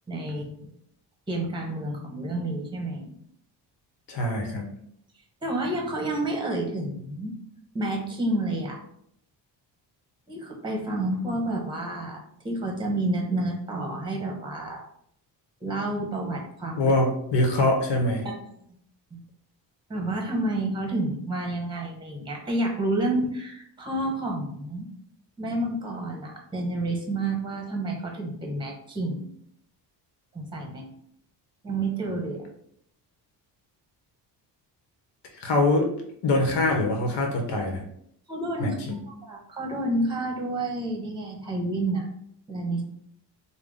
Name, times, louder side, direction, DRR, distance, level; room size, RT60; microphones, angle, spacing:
voice 1, 0.1-0.7 1.3-3.1 5.4-7.3 7.7-8.8 10.3-14.8 15.6-16.8 18.2-18.4 19.1-19.2 19.9-24.9 25.4-29.3 30.3-30.9 31.6-32.5 38.3-38.7 39.0-42.1 42.5-42.8, right 2 dB, 10° right, 0 dB, 1.0 m, -29 dB
voice 2, 4.1-4.7 16.8-18.3 35.4-35.9 36.2-37.8 38.6-39.0, left 2 dB, 75° left, 2 dB, 1.0 m, -23 dB
3.7 x 2.2 x 3.6 m, 0.69 s
cardioid pair, 105°, 43 cm